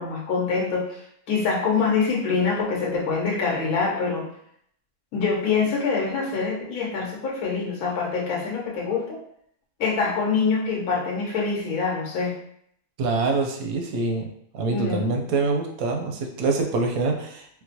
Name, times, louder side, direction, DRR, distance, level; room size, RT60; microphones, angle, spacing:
voice 1, 0.0-4.3 5.1-9.2 9.8-12.4 14.7-15.1, left 5 dB, 80° left, -3 dB, 1.1 m, -25 dB
voice 2, 13.0-14.3 14.5-17.5, right 3 dB, 85° right, 2 dB, 1.1 m, -25 dB
4.4 x 2.0 x 2.7 m, 0.70 s
omnidirectional pair, 1.5 m